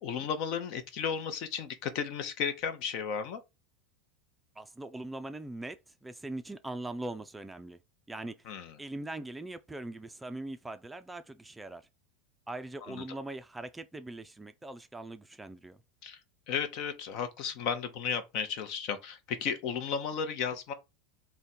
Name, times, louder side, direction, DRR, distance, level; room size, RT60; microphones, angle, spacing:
voice 1, 0.0-3.4 8.5-8.7 12.9-13.0 16.0-16.2 16.5-20.7, left 7 dB, 55° left, 0.8 m, -34 dB
voice 2, 4.6-7.8 8.1-8.3 8.8-11.9 12.5-15.8, right 2 dB, 10° right, 0.4 m, -41 dB
3.6 x 2.2 x 4.2 m
hypercardioid pair, 105°, 0 cm